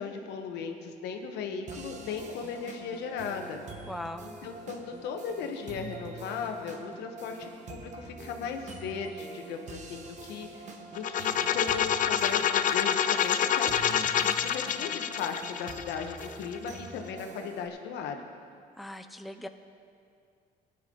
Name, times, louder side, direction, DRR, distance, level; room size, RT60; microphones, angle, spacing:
voice 1, 0.0-3.6 4.2-18.1, left 6 dB, 85° left, 5 dB, 1.2 m, -37 dB
sound 1, 1.7-17.7, right 3 dB, 45° right, 1.3 m, -45 dB
voice 2, 3.9-4.3 18.8-19.5, left 1 dB, ahead, 7 dB, 0.5 m, -39 dB
sound 2, 10.9-16.8, left 9 dB, 50° left, 0.5 m, -27 dB
16.5 x 10.0 x 3.9 m, 2.3 s
cardioid pair, 110°, 17 cm